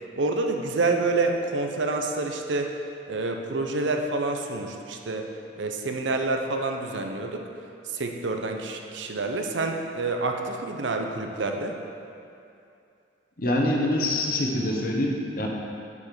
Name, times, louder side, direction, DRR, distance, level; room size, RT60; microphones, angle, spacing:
voice 1, 0.2-2.7 3.1-5.3 5.6-7.5 7.8-11.8, right 3 dB, 85° right, 3 dB, 0.7 m, -28 dB
voice 2, 13.4-15.5, left 1 dB, 50° left, 0 dB, 1.0 m, -25 dB
6.7 x 5.0 x 6.7 m, 2.6 s
head